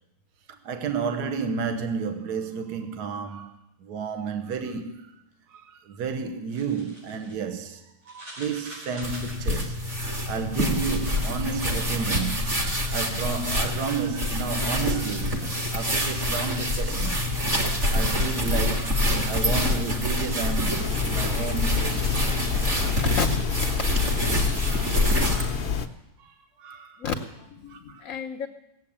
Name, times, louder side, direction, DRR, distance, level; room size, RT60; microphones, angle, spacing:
voice 1, 0.5-3.5 3.8-5.1 5.5-9.8 10.3-22.3 22.7-23.0 24.3-25.7 26.2-27.0 27.7-28.0, right 5 dB, 55° right, 1.5 m, -32 dB
sound 1, 6.5-7.4 8.0-9.7 10.4-11.2, equal, 90° right, 6.3 m, -44 dB
sound 2, 9.0-25.5, left 1 dB, 35° right, 2.2 m, -26 dB
sound 3, 20.8-25.9, left 6 dB, 70° left, 0.5 m, -28 dB
voice 2, 22.5-23.3 27.0-28.5, left 6 dB, 55° left, 1.0 m, -32 dB
18.0 x 7.7 x 8.7 m
omnidirectional pair, 2.3 m